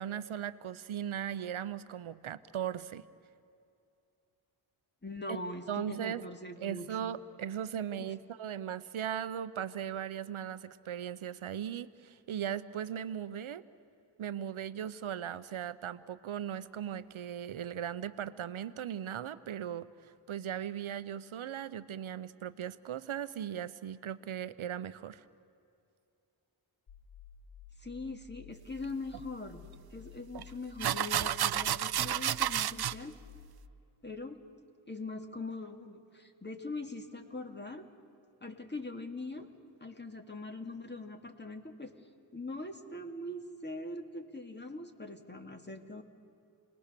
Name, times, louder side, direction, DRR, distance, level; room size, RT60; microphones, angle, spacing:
voice 1, 0.0-3.0 5.3-5.4 5.7-6.2 6.6-13.6 14.2-25.2, right 9 dB, 80° right, 14 dB, 0.8 m, -38 dB
voice 2, 5.0-7.1 8.0-8.1 27.8-33.2 34.0-34.4 34.9-37.9 38.4-39.5 39.8-41.9 42.3-46.0, left 2 dB, 20° left, 5 dB, 2.2 m, -42 dB
sound 1, 26.9-33.7, left 6 dB, 60° left, 1.3 m, -53 dB
sound 2, 29.1-29.2 30.3-30.4 30.8-32.9, right 11 dB, 55° right, 0.5 m, -31 dB
30.0 x 20.0 x 6.8 m, 2.6 s
cardioid pair, 55°, 48 cm